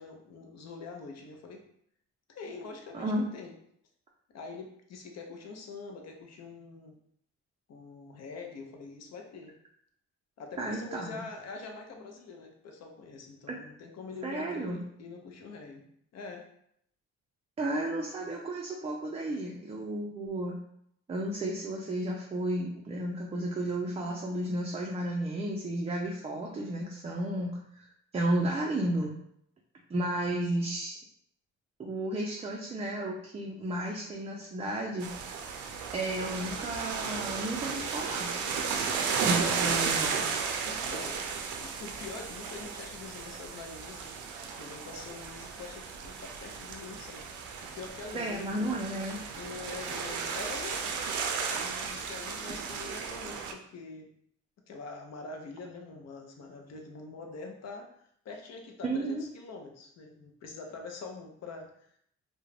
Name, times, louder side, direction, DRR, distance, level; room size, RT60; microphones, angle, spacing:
voice 1, 0.0-1.7 2.3-3.5 4.3-7.0 7.7-9.5 10.4-15.9 16.1-16.5 30.3-30.5 40.6-41.3 41.6-44.1 44.4-48.8 49.3-51.0 51.4-54.1 54.7-57.9 58.2-61.9, left 4 dB, 60° left, 3 dB, 0.6 m, -44 dB
voice 2, 2.9-3.2 10.6-11.2 13.5-13.6 14.2-14.8 17.6-20.6 21.1-27.9 28.1-29.1 29.9-31.0 31.8-35.1 35.9-38.3 39.2-40.3 48.1-49.2 58.8-59.3, right 1 dB, 20° right, -1 dB, 0.4 m, -33 dB
sound 1, 35.0-53.5, right 5 dB, 75° right, 0.5 m, -34 dB
2.4 x 2.1 x 3.2 m, 0.70 s
cardioid pair, 90°, 30 cm